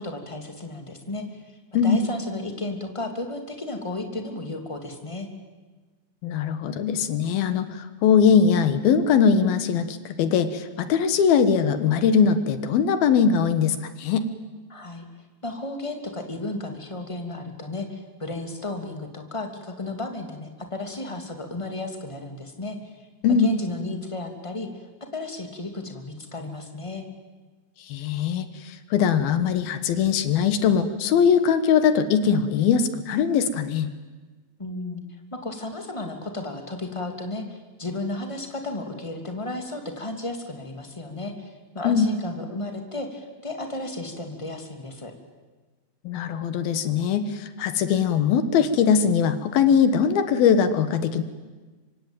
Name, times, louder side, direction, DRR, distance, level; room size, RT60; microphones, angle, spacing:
voice 1, 0.0-5.3 14.7-15.0 15.4-23.0 23.3-24.8 25.1-27.0 34.6-35.0 35.3-45.1, left 2 dB, 10° left, 5 dB, 2.1 m, -33 dB
voice 2, 6.2-14.3 23.2-23.5 27.8-33.9 41.8-42.1 46.0-51.2, left 7 dB, 70° left, 11 dB, 2.9 m, -21 dB
25.5 x 24.5 x 9.2 m, 1.3 s
omnidirectional pair, 4.9 m